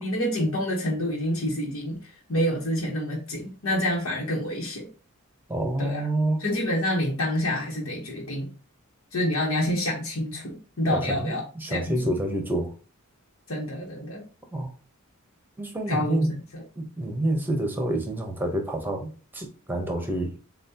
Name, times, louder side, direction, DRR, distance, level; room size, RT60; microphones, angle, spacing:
voice 1, 0.0-4.9 5.8-6.0 6.4-8.5 9.1-11.4 11.7-12.1 13.5-14.3 15.9-16.3 16.5-16.6, left 1 dB, 80° left, 1.2 m, -27 dB
voice 2, 5.5-6.4 10.9-12.7 14.5-14.7 15.6-16.4 16.8-20.4, right 1 dB, 10° right, 1.0 m, -28 dB
7.2 x 2.4 x 2.9 m
head